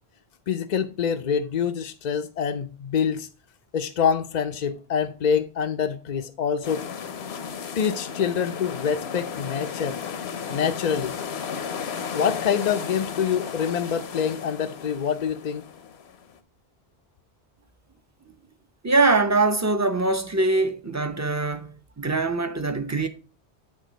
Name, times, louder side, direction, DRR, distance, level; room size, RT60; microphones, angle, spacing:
voice 1, 0.5-3.3 3.7-6.8 7.8-10.0 10.5-11.2 12.1-15.6, left 7 dB, 50° left, 0.5 m, -26 dB
sound 1, 6.6-16.4, left 7 dB, 75° left, 1.0 m, -34 dB
voice 2, 18.8-23.1, right 3 dB, 20° right, 0.6 m, -23 dB
9.6 x 3.6 x 5.0 m
omnidirectional pair, 1.1 m